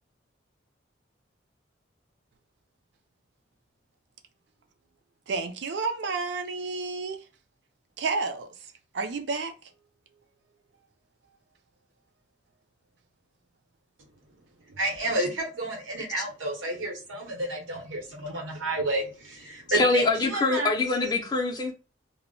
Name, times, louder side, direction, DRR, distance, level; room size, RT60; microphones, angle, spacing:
voice 1, 5.3-7.2 8.0-9.7, right 4 dB, 60° right, 0.4 m, -31 dB
voice 2, 14.7-20.7, right 1 dB, 90° right, 0.8 m, -30 dB
voice 3, 19.7-21.7, left 3 dB, 20° left, 0.4 m, -24 dB
2.1 x 2.0 x 3.6 m
head